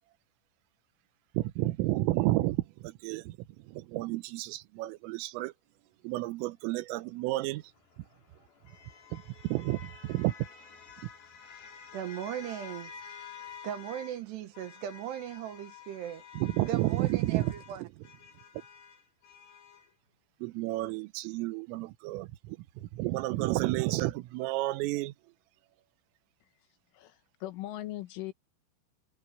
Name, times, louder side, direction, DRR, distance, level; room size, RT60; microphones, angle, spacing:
voice 1, 1.3-3.4 3.7-5.5 6.0-7.6 9.1-10.3 16.4-17.5 20.4-25.1, right 18 dB, 90° right, 3.5 m, -31 dB
sound 1, 7.6-14.2 14.5-19.9, left 7 dB, 50° left, 5.5 m, -50 dB
voice 2, 11.9-12.9 13.6-16.2 16.7-17.8, right 10 dB, 70° right, 2.8 m, -38 dB
voice 3, 26.9-28.3, left 15 dB, 75° left, 3.8 m, -39 dB
omnidirectional pair, 5.7 m